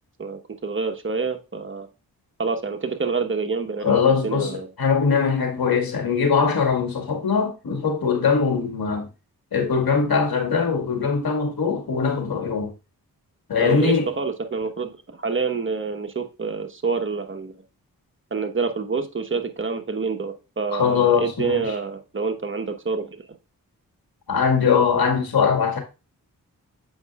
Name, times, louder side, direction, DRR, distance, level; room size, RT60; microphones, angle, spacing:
voice 1, 0.2-1.9 2.4-4.7 13.6-17.5 18.3-23.2, right 4 dB, 35° right, 1.1 m, -27 dB
voice 2, 3.8-9.1 9.5-12.7 13.5-14.1 20.7-21.8 24.3-25.8, left 5 dB, 70° left, 2.0 m, -21 dB
7.8 x 5.1 x 2.4 m
cardioid pair, 50°, 37 cm